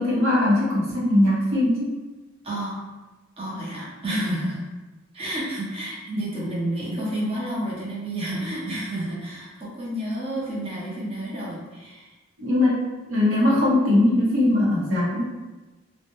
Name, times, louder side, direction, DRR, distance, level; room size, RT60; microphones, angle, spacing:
voice 1, 0.0-1.9 12.4-15.3, left 1 dB, 90° right, -5 dB, 0.7 m, -20 dB
voice 2, 2.4-2.8 3.4-4.6 5.1-12.1, right 1 dB, 30° right, -7 dB, 0.6 m, -30 dB
2.2 x 2.1 x 2.9 m, 1.2 s
head